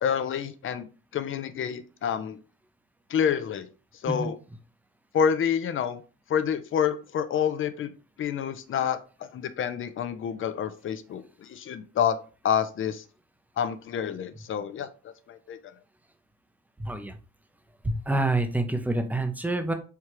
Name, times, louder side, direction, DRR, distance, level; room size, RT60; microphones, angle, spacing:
voice 1, 0.0-2.4 3.1-3.7 4.0-4.4 5.1-6.0 6.3-7.9 8.2-12.2 12.4-13.0 13.6-15.7, left 8 dB, 45° left, 11 dB, 0.5 m, -28 dB
voice 2, 16.8-17.2 17.8-19.7, right 2 dB, 5° right, 7 dB, 0.5 m, -27 dB
4.6 x 2.3 x 3.0 m, 0.36 s
cardioid pair, 90°, 30 cm